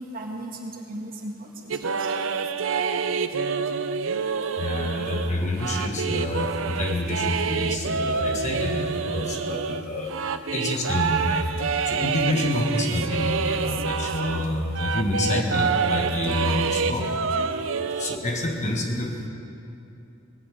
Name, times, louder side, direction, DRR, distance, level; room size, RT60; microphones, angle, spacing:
voice 1, 0.0-2.1, right 1 dB, 45° right, 0 dB, 1.8 m, -37 dB
sound 1, 1.7-14.5 14.7-18.2, right 5 dB, 70° right, 0.6 m, -27 dB
voice 2, 4.6-10.1 10.5-11.5 11.9-17.2 18.0-19.3, left 1 dB, 35° left, 1 dB, 1.6 m, -27 dB
19.5 x 7.1 x 8.3 m, 2.6 s
head